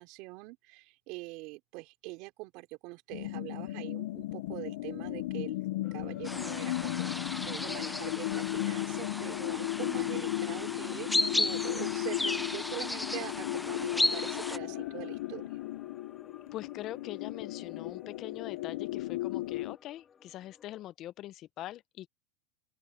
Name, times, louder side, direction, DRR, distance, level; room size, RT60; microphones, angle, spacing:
voice 1, 0.0-15.6, right 23 dB, 55° right, 3.7 m, -43 dB
sound 1, 3.1-19.8, left 18 dB, 75° left, 0.4 m, -36 dB
sound 2, 5.8-20.8, left 6 dB, 25° left, 1.9 m, -51 dB
sound 3, 6.2-14.6, left 2 dB, 5° left, 0.4 m, -34 dB
voice 2, 16.5-22.1, left 14 dB, 40° left, 0.7 m, -43 dB
open air
supercardioid pair, 125°, 0 cm